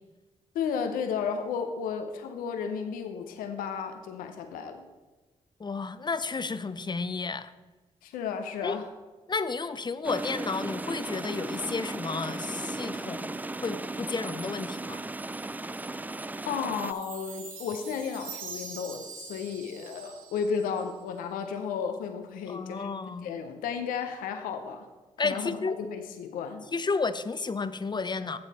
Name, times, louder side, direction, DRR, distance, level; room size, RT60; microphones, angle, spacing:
voice 1, 0.5-4.8 8.0-8.9 16.4-23.0 23.2-24.9 25.2-26.6, left 6 dB, 90° left, 6 dB, 0.6 m, -33 dB
voice 2, 5.6-7.5 8.6-8.8 9.3-13.4 13.6-15.0 22.5-23.3 25.2-25.7 26.7-28.4, left 4 dB, 30° left, 13 dB, 0.6 m, -32 dB
sound 1, 10.0-16.9, right 2 dB, 10° right, 0.3 m, -36 dB
Chime, 16.5-21.0, right 5 dB, 85° right, 1.0 m, -44 dB
8.7 x 7.2 x 4.1 m, 1.2 s
supercardioid pair, 45°, 14 cm